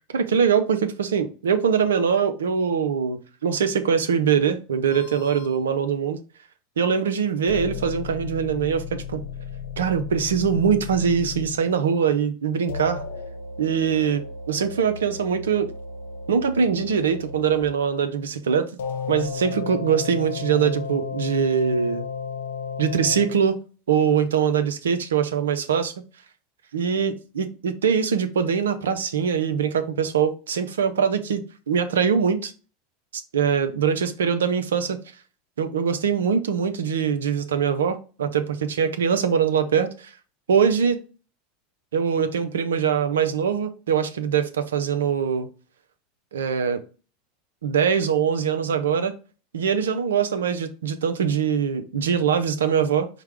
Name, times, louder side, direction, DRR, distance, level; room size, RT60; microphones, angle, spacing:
voice 1, 0.1-6.2 6.8-9.2 9.8-13.0 13.6-14.2 14.5-15.7 16.3-18.7 19.1-22.1 22.8-23.6 23.9-25.9 26.7-32.5 33.1-35.0 35.6-40.1 40.5-41.0 41.9-45.5 46.3-46.8 47.6-49.2 49.5-53.1, right 7 dB, 85° right, 0.6 m, -23 dB
sound 1, 4.9-5.6 7.5-11.6 12.7-17.7 18.8-23.4, left 5 dB, 85° left, 0.7 m, -34 dB
4.8 x 2.3 x 4.7 m
hypercardioid pair, 95°, 0 cm